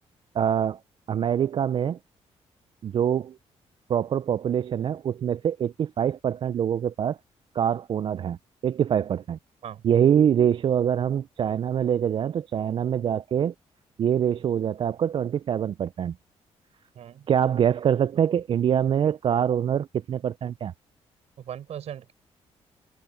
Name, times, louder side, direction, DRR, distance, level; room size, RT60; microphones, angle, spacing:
voice 1, 0.3-0.8 1.1-2.0 2.8-3.4 3.9-7.2 7.5-8.4 8.6-9.4 9.8-13.5 14.0-16.1 17.3-20.7, right 9 dB, 50° right, 0.4 m, -24 dB
voice 2, 16.9-17.3 21.4-22.1, right 9 dB, 70° right, 4.9 m, -38 dB
cardioid pair, 100°, 11 cm